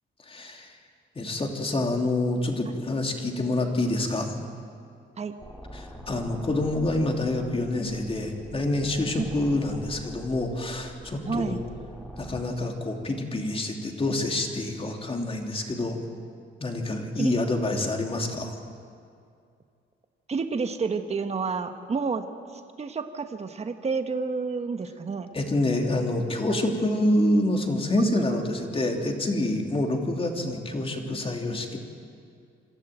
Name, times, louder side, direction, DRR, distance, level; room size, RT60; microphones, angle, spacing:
voice 1, 0.2-0.8 1.1-4.3 5.7-11.6 12.2-16.0 16.6-18.6 25.3-31.8, left 1 dB, 30° left, 3 dB, 2.9 m, -27 dB
sound 1, 5.4-12.4, equal, 5° left, 3.2 m, -43 dB
voice 2, 11.3-11.6 17.2-17.3 20.3-22.2 22.5-25.3 26.5-26.7 28.1-29.0, right 4 dB, 35° right, 7 dB, 1.2 m, -30 dB
26.0 x 13.5 x 9.1 m, 2.4 s
cardioid pair, 90°, 20 cm